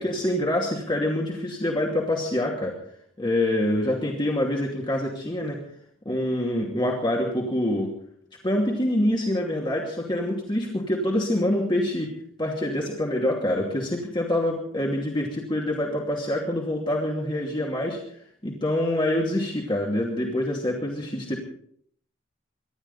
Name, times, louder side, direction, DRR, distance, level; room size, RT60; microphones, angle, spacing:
voice 1, 0.0-2.8 3.2-5.6 6.0-7.9 8.4-12.1 12.4-18.0 18.4-21.4, left 1 dB, 25° left, -1 dB, 2.6 m, -26 dB
25.0 x 12.5 x 4.2 m, 0.62 s
head